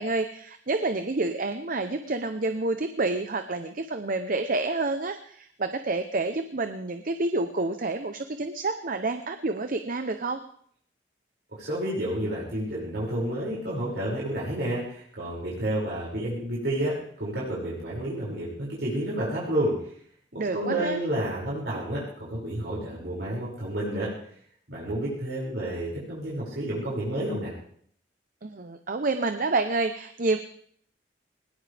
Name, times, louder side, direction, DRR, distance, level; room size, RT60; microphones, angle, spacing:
voice 1, 0.0-10.4 20.4-21.0 28.4-30.4, right 3 dB, 50° right, 8 dB, 0.9 m, -28 dB
voice 2, 11.5-19.7 20.3-24.1 24.7-27.5, right 1 dB, 75° right, -7 dB, 6.3 m, -30 dB
20.5 x 19.0 x 3.5 m, 0.62 s
head